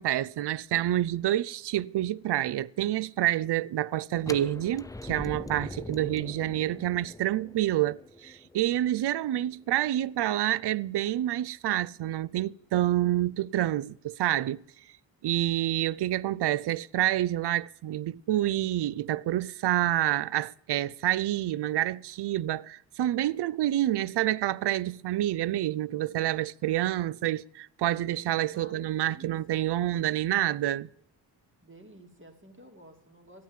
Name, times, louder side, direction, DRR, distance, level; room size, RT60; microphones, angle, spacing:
voice 1, 0.0-14.6 15.2-30.9, right 13 dB, 55° right, 0.6 m, -28 dB
sound 1, 4.2-10.1, left 2 dB, 5° left, 0.5 m, -43 dB
voice 2, 28.5-29.3 31.6-33.4, right 1 dB, 25° right, 3.0 m, -52 dB
12.5 x 9.1 x 7.4 m
supercardioid pair, 45°, 50 cm